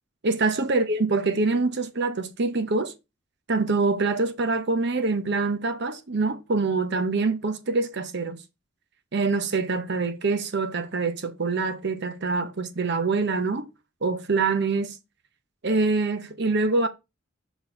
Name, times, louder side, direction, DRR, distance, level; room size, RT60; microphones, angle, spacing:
voice 1, 0.2-2.9 3.5-8.4 9.1-13.7 14.0-15.0 15.6-16.9, right 3 dB, 60° right, 0.9 m, -25 dB
6.0 x 4.4 x 5.3 m
head